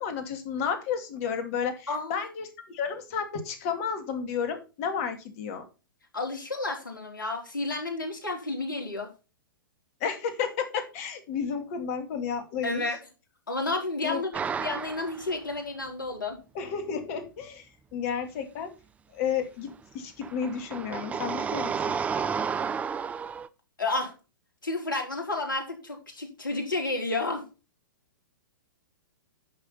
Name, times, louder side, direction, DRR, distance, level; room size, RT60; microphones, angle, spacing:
voice 1, 0.0-5.7 10.0-12.8 14.0-14.2 16.5-18.7 19.1-21.9, left 7 dB, 40° left, 8 dB, 2.6 m, -32 dB
voice 2, 1.9-2.2 6.1-9.1 12.6-13.0 13.5-14.3 14.6-16.4 23.8-24.1 24.6-27.4, left 2 dB, 70° left, 3 dB, 4.3 m, -31 dB
sound 1, 14.3-15.4 19.7-19.8 20.2-23.5, right 6 dB, 10° right, 0.6 m, -31 dB
11.0 x 6.6 x 4.2 m, 0.31 s
figure-of-eight pair, 110°, 11 cm